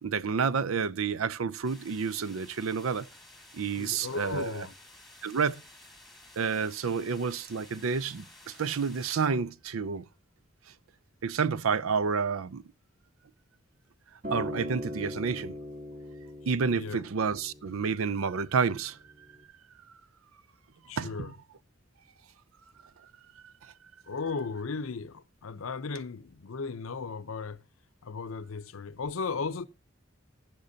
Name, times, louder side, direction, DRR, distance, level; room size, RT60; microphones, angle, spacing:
voice 1, 0.0-3.1 3.5-4.5 5.2-5.6 6.4-10.0 11.2-12.6 14.3-15.5 16.5-19.0 21.0-21.2 23.4-23.7, right 5 dB, 90° right, 0.5 m, -29 dB
sound 1, 1.6-9.3, left 2 dB, ahead, 1.7 m, -53 dB
voice 2, 3.8-4.7 16.7-17.0 20.9-21.3 24.1-27.6 28.0-29.7, left 4 dB, 90° left, 0.7 m, -36 dB
Acoustic guitar, 14.2-18.5 19.4-19.5, left 1 dB, 45° right, 2.9 m, -40 dB
13.5 x 11.5 x 2.8 m
head